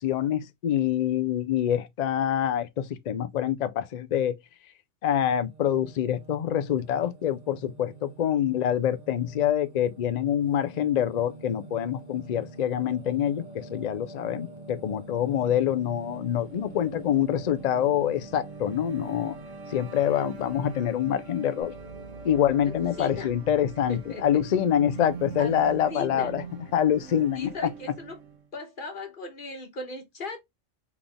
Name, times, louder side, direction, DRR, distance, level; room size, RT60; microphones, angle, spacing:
voice 1, 0.0-4.4 5.0-19.4 19.7-21.7 22.2-26.4 26.7-27.7, left 10 dB, 80° left, 0.3 m, -26 dB
Singing, 5.3-22.4, right 2 dB, 35° right, 1.1 m, -46 dB
sound 1, 15.5-28.5, right 6 dB, 80° right, 1.2 m, -44 dB
sound 2, 21.6-25.4, right 5 dB, 55° right, 1.9 m, -49 dB
voice 2, 22.7-23.3 23.9-24.4 25.4-26.3 27.3-28.2 28.5-30.4, left 2 dB, 45° left, 1.3 m, -38 dB
4.0 x 3.5 x 3.5 m
omnidirectional pair, 1.3 m